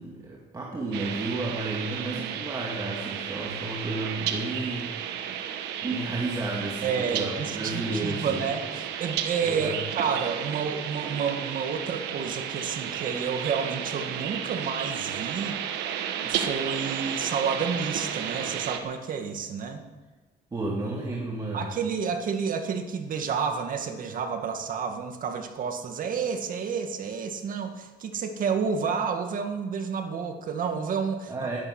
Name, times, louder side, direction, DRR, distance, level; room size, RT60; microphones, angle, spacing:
voice 1, 0.0-5.3 5.8-8.4 9.4-9.8 20.5-21.8 31.3-31.6, right 2 dB, 20° right, -2 dB, 2.1 m, -32 dB
sound 1, 0.9-18.8, right 9 dB, 90° right, 1.3 m, -33 dB
voice 2, 1.9-2.4 6.8-15.6 16.2-19.8 21.5-31.5, right 6 dB, 55° right, 6 dB, 1.9 m, -30 dB
11.5 x 11.0 x 7.7 m, 1.3 s
cardioid pair, 110°, 17 cm